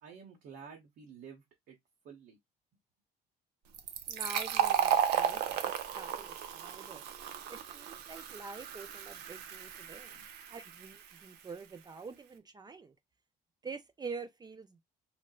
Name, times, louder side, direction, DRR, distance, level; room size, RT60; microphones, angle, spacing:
voice 1, 0.0-1.8 2.0-2.4 10.1-10.2, right 6 dB, 70° right, 1.0 m, -51 dB
Fill (with liquid), 3.7-11.1, right 9 dB, 85° right, 0.5 m, -34 dB
voice 2, 4.1-7.0 7.5-10.2 10.5-12.9 13.6-14.8, right 4 dB, 25° right, 0.4 m, -46 dB
4.3 x 2.1 x 2.3 m
cardioid pair, 110°, 17 cm